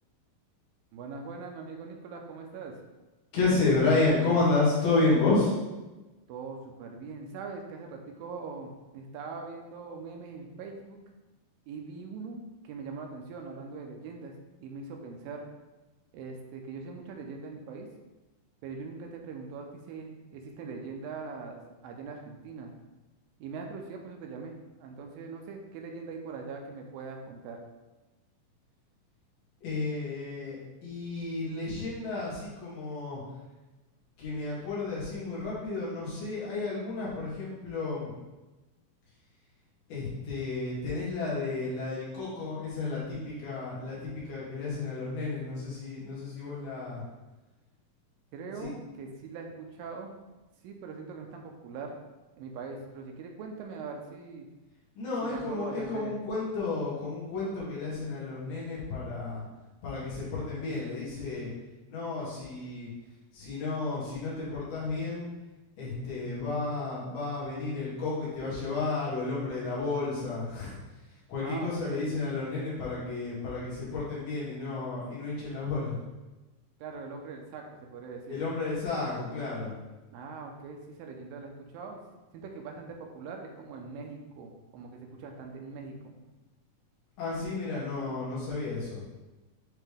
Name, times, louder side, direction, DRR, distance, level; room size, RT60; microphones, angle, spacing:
voice 1, 0.9-2.8 6.3-11.0 11.7-15.5 16.1-17.9 18.6-22.7 23.4-27.6 48.3-50.1 50.6-52.0 52.4-54.5 55.2-56.2 71.4-72.2 76.8-77.6 77.9-78.4 80.1-82.0 82.3-86.1, right 4 dB, 80° right, 2 dB, 2.4 m, -42 dB
voice 2, 3.3-5.6 29.6-33.2 34.2-38.1 39.9-47.0 48.6-48.7 55.0-59.4 59.8-61.5 61.9-62.9 63.3-65.3 65.8-70.8 71.3-76.0 78.3-79.7 87.2-89.0, left 3 dB, 85° left, -9 dB, 4.2 m, -31 dB
9.2 x 3.3 x 3.4 m, 1.1 s
omnidirectional pair, 4.2 m